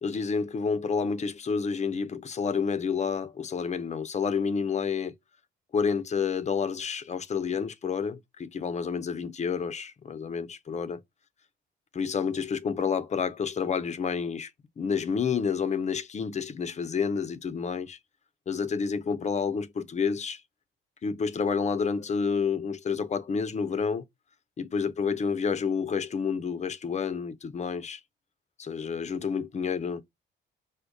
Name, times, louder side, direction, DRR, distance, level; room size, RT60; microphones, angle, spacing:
voice 1, 0.0-5.1 5.7-11.0 11.9-14.5 14.8-18.0 18.5-20.4 21.0-24.0 24.6-28.0 28.6-30.0, left 6 dB, 35° left, 0.6 m, -29 dB
5.0 x 2.2 x 2.2 m
cardioid pair, 90°, 20 cm